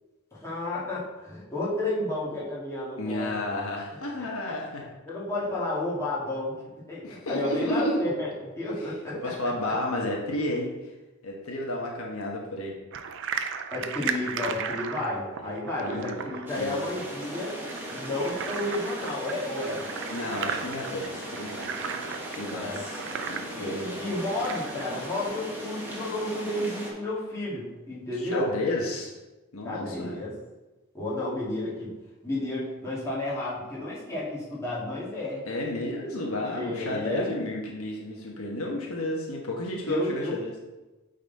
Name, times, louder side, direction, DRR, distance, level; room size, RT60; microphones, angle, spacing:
voice 1, 0.3-3.3 4.2-4.5 5.1-6.6 6.9-9.3 13.7-17.6 17.9-19.8 22.5-22.8 23.5-28.5 29.6-30.3 30.9-31.9 32.2-35.4 36.5-37.4 39.9-40.3, left 1 dB, 15° left, -8 dB, 2.5 m, -32 dB
voice 2, 3.0-4.9 7.0-8.0 8.7-8.8 9.1-10.7 11.2-12.8 15.4-15.5 15.8-16.2 16.6-16.8 20.1-21.6 22.3-23.0 23.3-23.9 28.2-29.1 29.5-30.1 35.5-40.5, left 1 dB, 75° left, -1 dB, 1.2 m, -32 dB
sound 1, 12.9-25.2, right 6 dB, 60° right, 0.5 m, -37 dB
sound 2, 16.5-26.9, equal, 10° right, 1.7 m, -38 dB
8.8 x 4.1 x 4.1 m, 1.1 s
head